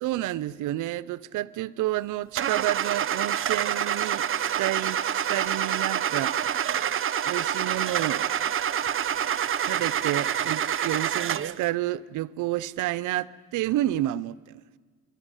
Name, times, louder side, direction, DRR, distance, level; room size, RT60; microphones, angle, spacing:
voice 1, 0.0-4.2 4.6-6.4 7.2-8.3 9.7-14.6, right 15 dB, 90° right, 0.6 m, -30 dB
Car / Engine starting, 2.4-11.6, right 9 dB, 45° right, 0.7 m, -27 dB
28.5 x 12.0 x 9.8 m
cardioid pair, 90°, 30 cm